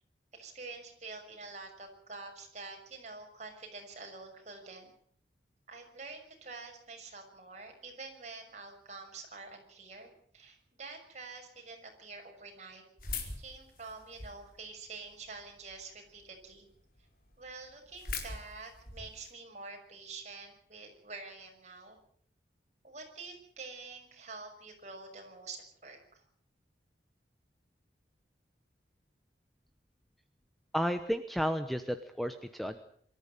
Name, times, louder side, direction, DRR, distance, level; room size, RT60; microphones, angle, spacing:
voice 1, 0.3-4.9 5.7-12.8 13.4-16.7 17.4-22.0 22.8-26.2, right 3 dB, 40° right, 2 dB, 6.3 m, -47 dB
sound 1, 13.0-14.5 15.1-15.7 16.2-16.3 16.5-16.6 17.0-17.1 17.3-19.3, left 3 dB, 50° left, 4.5 m, -41 dB
voice 2, 30.7-32.8, equal, ahead, 8 dB, 0.9 m, -32 dB
24.0 x 14.0 x 9.1 m, 0.62 s
head